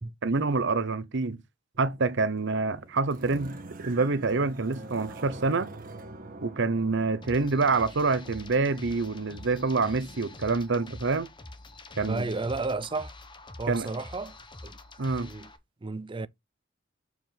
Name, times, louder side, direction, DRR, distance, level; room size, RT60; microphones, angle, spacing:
voice 1, 0.2-1.4 1.8-3.5 3.8-5.7 6.4-11.3 12.0-12.2 13.7-13.9 15.0-15.3, right 3 dB, 65° right, 0.8 m, -26 dB
sound 1, 1.7-10.3, right 2 dB, 45° right, 1.3 m, -45 dB
sound 2, 7.2-15.6, left 2 dB, 25° left, 1.0 m, -46 dB
voice 2, 12.1-13.1 13.6-14.4 14.6-14.8 15.2-15.5 15.8-16.3, right 3 dB, 25° right, 0.4 m, -32 dB
6.8 x 4.8 x 3.8 m
head